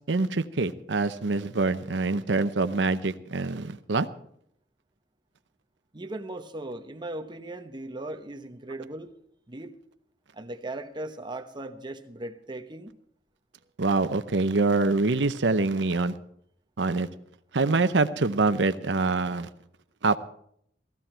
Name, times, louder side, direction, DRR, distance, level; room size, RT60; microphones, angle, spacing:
voice 1, 0.0-4.1 13.8-16.1 16.8-17.1 17.5-19.5 20.0-20.2, right 3 dB, 80° right, 0.8 m, -25 dB
voice 2, 5.9-9.1 9.5-9.7 10.3-13.0, right 2 dB, 25° right, 1.0 m, -38 dB
16.5 x 14.5 x 4.5 m
head